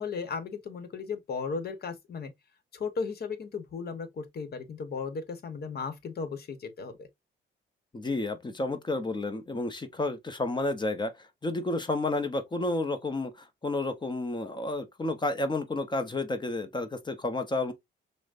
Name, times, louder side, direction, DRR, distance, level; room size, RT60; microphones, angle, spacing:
voice 1, 0.0-2.3 2.7-7.1, left 5 dB, 50° left, 1.0 m, -36 dB
voice 2, 7.9-11.1 11.4-13.3 13.6-17.7, left 2 dB, 20° left, 0.7 m, -31 dB
6.1 x 2.1 x 2.5 m
cardioid pair, 90°, 20 cm